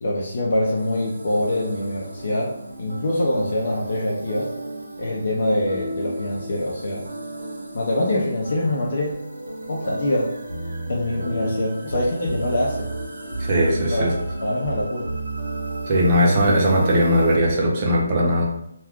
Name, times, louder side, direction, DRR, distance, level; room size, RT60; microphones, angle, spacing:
voice 1, 0.0-2.5 2.8-4.5 5.0-7.0 7.7-9.2 9.7-10.3 10.9-12.9 13.9-14.1 14.4-15.1, left 1 dB, 55° left, -3 dB, 0.6 m, -24 dB
sound 1, 0.8-17.4, right 1 dB, 85° right, 0.8 m, -32 dB
voice 2, 13.4-14.1 15.9-18.5, equal, 30° right, -2 dB, 0.7 m, -19 dB
2.4 x 2.3 x 3.5 m, 0.76 s
hypercardioid pair, 170°, 0 cm